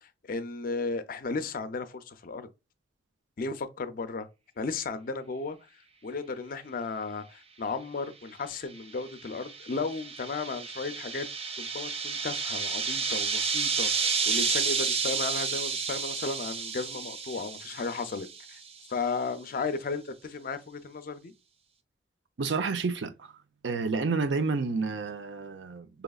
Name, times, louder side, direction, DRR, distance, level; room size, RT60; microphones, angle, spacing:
voice 1, 0.0-2.5 3.4-4.3 4.6-5.6 6.0-11.3 11.6-18.6 18.9-21.3, left 4 dB, 50° left, 0.5 m, -34 dB
sound 1, 8.8-18.6, right 5 dB, 35° right, 0.4 m, -31 dB
voice 2, 22.4-23.3 23.6-26.0, right 4 dB, 90° right, 0.5 m, -30 dB
5.0 x 2.9 x 2.3 m
head